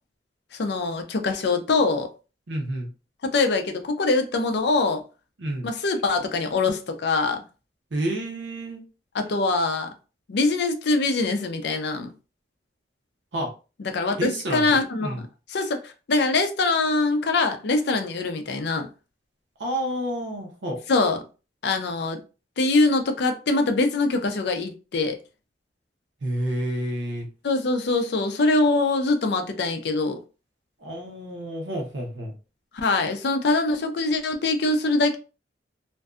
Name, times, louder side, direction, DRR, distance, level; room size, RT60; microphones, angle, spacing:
voice 1, 0.5-2.1 3.2-5.0 5.6-7.4 9.1-9.9 10.3-12.1 13.8-15.2 15.5-18.9 20.9-21.2 21.6-22.2 22.6-25.2 27.4-30.2 32.7-35.2, left 3 dB, 65° left, 0.5 m, -23 dB
voice 2, 2.5-2.9 5.4-5.7 7.9-8.8 13.3-13.5 14.2-15.2 19.6-20.8 26.2-27.3 30.8-32.3, right 1 dB, 85° right, 0.7 m, -29 dB
2.5 x 2.2 x 2.3 m
head